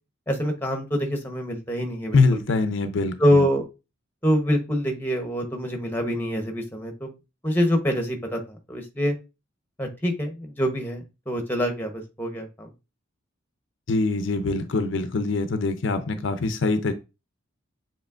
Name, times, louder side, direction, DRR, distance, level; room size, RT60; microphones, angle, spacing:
voice 1, 0.3-2.2 3.2-3.6 4.2-7.1 7.4-9.1 9.8-12.7, equal, 10° left, 5 dB, 0.8 m, -25 dB
voice 2, 2.1-3.4 13.9-16.9, left 3 dB, 60° left, 9 dB, 0.5 m, -23 dB
7.2 x 3.0 x 2.4 m, 0.27 s
head